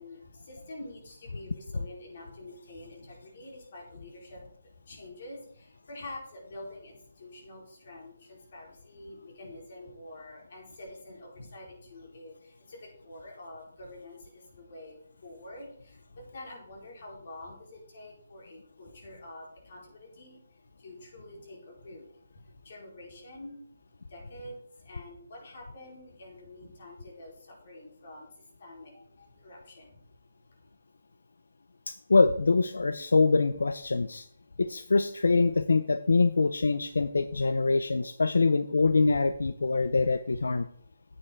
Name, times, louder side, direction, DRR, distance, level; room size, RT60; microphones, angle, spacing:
voice 1, 0.0-23.6 24.0-30.0 30.5-30.6, left 1 dB, 55° left, -1 dB, 4.5 m, -47 dB
voice 2, 31.9-34.3 34.6-40.7, left 3 dB, 85° left, 12 dB, 0.5 m, -24 dB
9.8 x 8.8 x 4.5 m, 0.63 s
hypercardioid pair, 160°, 0 cm